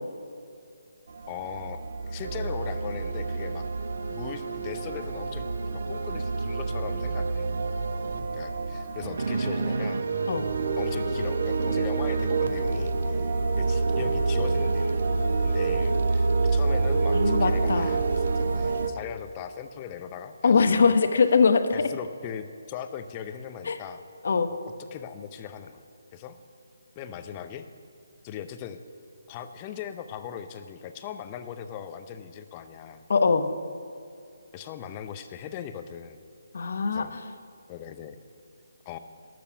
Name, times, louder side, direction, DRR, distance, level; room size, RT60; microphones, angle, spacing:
sound 1, 1.1-18.9, right 3 dB, 55° right, 0.8 m, -27 dB
voice 1, 1.3-3.7 4.1-7.5 8.3-10.1 10.8-13.3 13.6-15.1 15.4-21.0 21.7-24.0 24.5-25.8 26.1-26.4 27.0-27.7 28.2-28.8 29.3-33.0 34.5-36.2 36.9-37.2 37.7-38.2 38.9-39.0, left 8 dB, 25° left, 9 dB, 0.6 m, -39 dB
voice 2, 17.1-17.9 20.4-21.7 23.7-23.8 24.2-24.5 33.1-33.5 36.5-37.2, left 5 dB, 55° left, 9 dB, 0.8 m, -22 dB
12.0 x 6.8 x 6.9 m, 2.4 s
figure-of-eight pair, 145°, 0 cm